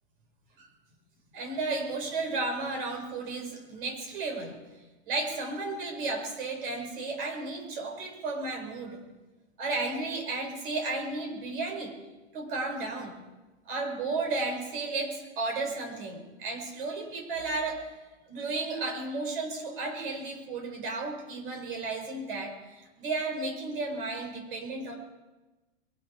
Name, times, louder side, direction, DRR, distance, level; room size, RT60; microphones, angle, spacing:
voice 1, 1.3-4.6 5.1-9.0 9.6-12.0 12.3-13.1 13.6-18.0 18.3-24.9, right 3 dB, 50° right, 3 dB, 4.9 m, -33 dB
22.5 x 12.5 x 4.6 m, 1.1 s
supercardioid pair, 175°, 34 cm